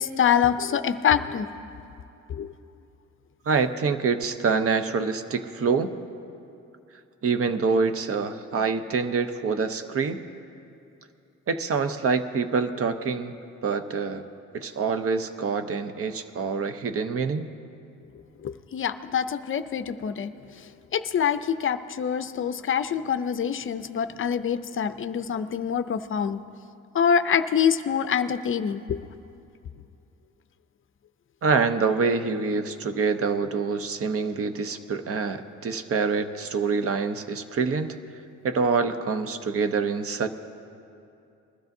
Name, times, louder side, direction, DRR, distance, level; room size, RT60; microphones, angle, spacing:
voice 1, 0.0-1.5 2.3-2.5 18.4-20.3 20.9-26.4 26.9-29.0, left 8 dB, 45° left, 11 dB, 0.5 m, -25 dB
voice 2, 3.5-5.9 7.2-10.2 11.5-13.3 13.6-14.2 14.5-17.5 31.4-38.0 38.4-40.3, right 5 dB, 50° right, 9 dB, 0.8 m, -26 dB
21.0 x 12.5 x 2.7 m, 2.7 s
cardioid pair, 90°, 30 cm